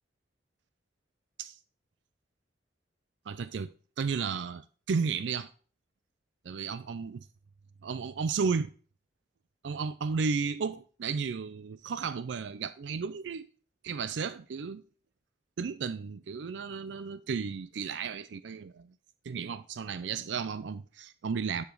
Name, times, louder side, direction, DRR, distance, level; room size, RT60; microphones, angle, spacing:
voice 1, 3.3-5.5 6.4-7.3 7.8-8.7 9.6-13.5 13.8-14.8 15.6-18.9 19.2-21.6, right 5 dB, 80° right, 0.4 m, -33 dB
9.4 x 5.1 x 3.8 m
head